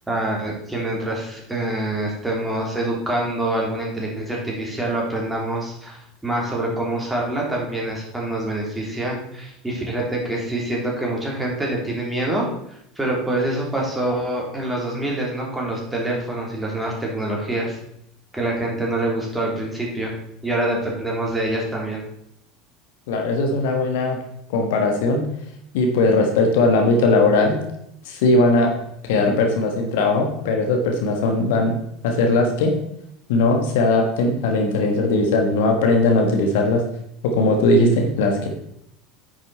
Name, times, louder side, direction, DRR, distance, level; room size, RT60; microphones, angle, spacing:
voice 1, 0.1-6.0 6.2-12.5 13.0-17.8 18.3-20.1 20.4-22.0, right 1 dB, 10° right, -2 dB, 3.2 m, -25 dB
voice 2, 23.1-24.2 24.5-25.2 25.7-27.6 28.0-28.7 29.0-31.8 32.0-32.7 33.3-36.8 37.2-38.5, left 2 dB, 65° left, 3 dB, 1.5 m, -19 dB
9.5 x 6.3 x 4.2 m, 0.74 s
figure-of-eight pair, 75°, 0 cm